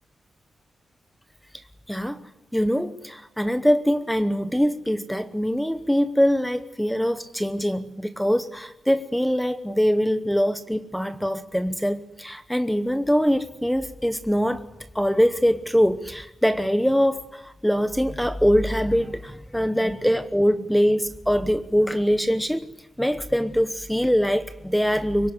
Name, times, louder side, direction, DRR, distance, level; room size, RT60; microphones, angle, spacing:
voice 1, 1.9-2.2 2.5-14.7 14.9-22.7 23.0-25.3, equal, ahead, 10 dB, 1.0 m, -23 dB
24.5 x 23.0 x 9.9 m, 0.91 s
wide cardioid pair, 180°, 0 cm